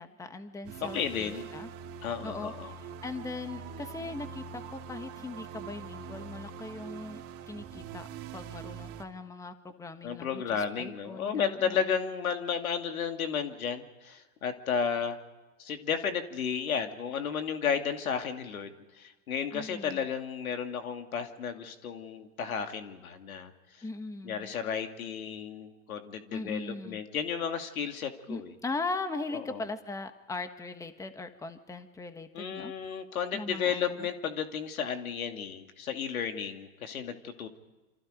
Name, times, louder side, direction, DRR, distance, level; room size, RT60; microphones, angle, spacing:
voice 1, 0.0-1.7 2.2-8.1 8.3-11.9 19.5-20.0 23.8-24.5 26.3-27.0 28.3-32.7 33.3-34.1, left 3 dB, 10° left, 9 dB, 1.3 m, -39 dB
sound 1, 0.6-9.0, right 7 dB, 35° right, 2.4 m, -43 dB
voice 2, 0.8-1.5 2.0-2.7 10.0-15.2 15.6-23.5 24.2-28.5 29.3-29.6 32.3-37.5, left 7 dB, 90° left, 6 dB, 2.7 m, -33 dB
28.5 x 26.5 x 5.2 m, 1.2 s
hypercardioid pair, 130°, 41 cm